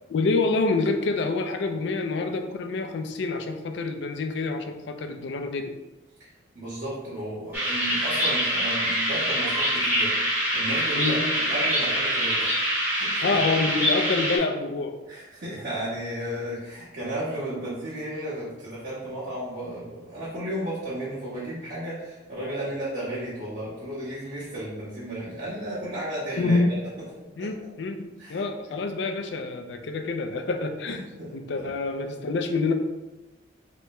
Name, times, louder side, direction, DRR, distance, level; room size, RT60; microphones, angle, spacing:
voice 1, 0.1-5.8 10.9-11.2 13.2-15.0 26.4-26.9 27.4-31.0 31.3-32.7, left 3 dB, 70° left, 6 dB, 0.4 m, -27 dB
voice 2, 6.5-10.3 10.5-12.6 12.9-13.4 15.1-26.8 27.4-27.5 28.2-28.4 30.8-31.7, right 1 dB, 60° right, -13 dB, 1.2 m, -34 dB
sound 1, 7.5-14.4, equal, 10° right, 0.8 m, -25 dB
3.3 x 3.0 x 3.1 m, 1.1 s
head